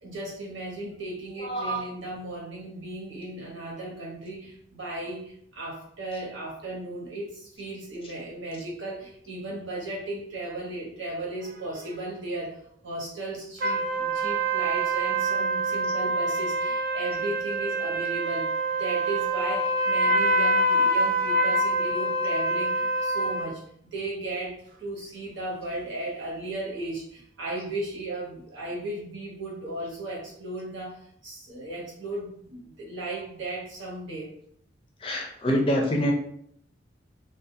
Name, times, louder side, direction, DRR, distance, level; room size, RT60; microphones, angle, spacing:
voice 1, 0.0-34.3, right 2 dB, 90° right, -4 dB, 1.0 m, -36 dB
voice 2, 1.4-1.8 35.0-36.1, equal, 30° left, 1 dB, 0.4 m, -25 dB
sound 1, 13.6-23.5, right 1 dB, 45° right, 0.3 m, -25 dB
2.4 x 2.3 x 2.6 m, 0.67 s
head